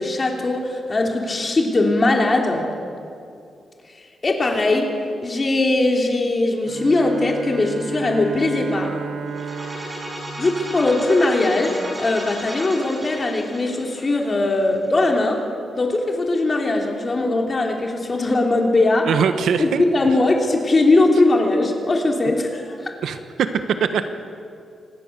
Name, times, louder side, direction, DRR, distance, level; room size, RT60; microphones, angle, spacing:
voice 1, 0.0-2.6 4.2-4.9 5.2-8.9 10.4-15.4 15.7-19.1 19.6-22.9, left 2 dB, 25° left, 1 dB, 3.1 m, -20 dB
Bowed string instrument, 6.6-11.5, right 6 dB, 55° right, 1.1 m, -33 dB
sound 1, 9.3-15.1, equal, 15° right, 6.5 m, -35 dB
voice 2, 19.1-19.8 23.0-23.5 23.8-24.0, right 7 dB, 75° right, 9 dB, 1.3 m, -21 dB
25.5 x 18.5 x 6.9 m, 2.4 s
wide cardioid pair, 160°, 0 cm